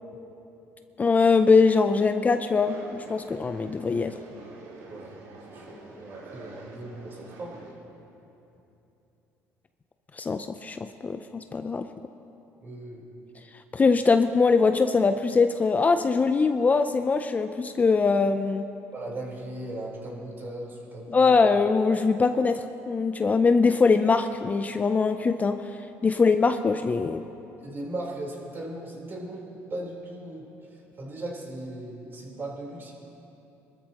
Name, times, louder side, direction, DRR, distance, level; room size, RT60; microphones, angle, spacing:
voice 1, 1.0-4.1 10.2-11.9 13.7-18.7 21.1-25.6 26.0-27.2, left 4 dB, 25° left, 9 dB, 0.5 m, -22 dB
sound 1, 2.6-7.7, right 3 dB, 85° right, 2.3 m, -46 dB
voice 2, 5.5-7.8 12.6-13.0 18.9-21.4 27.6-32.9, right 1 dB, 35° right, -2 dB, 3.8 m, -38 dB
24.0 x 13.5 x 2.9 m, 2.9 s
cardioid pair, 100°, 6 cm